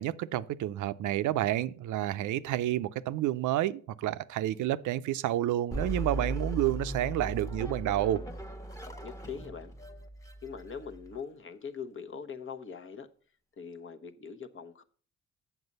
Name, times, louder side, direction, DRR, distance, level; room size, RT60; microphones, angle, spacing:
voice 1, 0.0-8.2, right 13 dB, 80° right, 0.6 m, -30 dB
sound 1, 5.7-11.2, right 1 dB, 10° left, 1.2 m, -38 dB
voice 2, 9.0-9.7 10.4-13.1 13.6-14.8, left 6 dB, 40° left, 1.0 m, -42 dB
8.0 x 7.3 x 5.3 m
cardioid pair, 90°, 30 cm